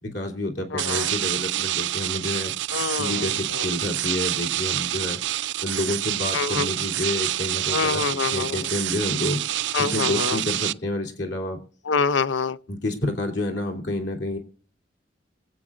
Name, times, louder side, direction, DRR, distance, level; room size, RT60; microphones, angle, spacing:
voice 1, 0.0-2.5 3.0-5.2 5.6-9.4 9.8-11.6 12.7-14.4, left 1 dB, 70° left, 2.9 m, -29 dB
voice 2, 0.7-1.1 2.7-3.7 6.3-6.7 7.7-8.6 9.7-10.4 11.9-12.6, left 5 dB, 90° left, 0.6 m, -26 dB
sound 1, 0.8-10.7, right 14 dB, 70° right, 0.4 m, -27 dB
25.0 x 8.5 x 2.5 m
head